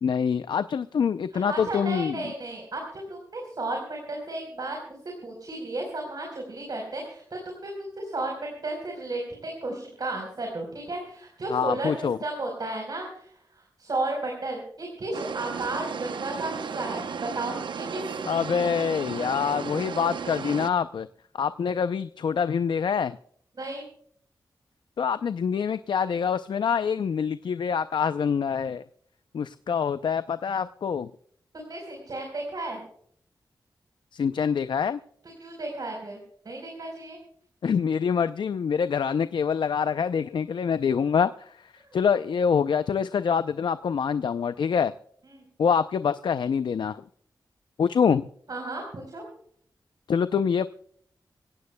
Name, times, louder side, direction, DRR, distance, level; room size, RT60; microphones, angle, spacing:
voice 1, 0.0-2.3 11.5-12.2 18.3-21.1 21.3-23.2 25.0-28.8 29.3-31.1 34.1-35.0 37.6-41.7 41.9-44.9 45.6-47.0 47.8-48.3 50.1-50.7, left 6 dB, 80° left, 12 dB, 0.5 m, -25 dB
voice 2, 1.5-5.0 5.2-18.3 23.6-23.9 31.5-32.8 35.2-36.2 36.4-37.2 45.3-45.4 48.5-49.3, right 2 dB, 55° right, 1 dB, 4.1 m, -34 dB
sound 1, 15.1-20.7, right 6 dB, 90° right, 0.7 m, -34 dB
25.0 x 16.5 x 2.2 m, 0.64 s
wide cardioid pair, 110°, 8 cm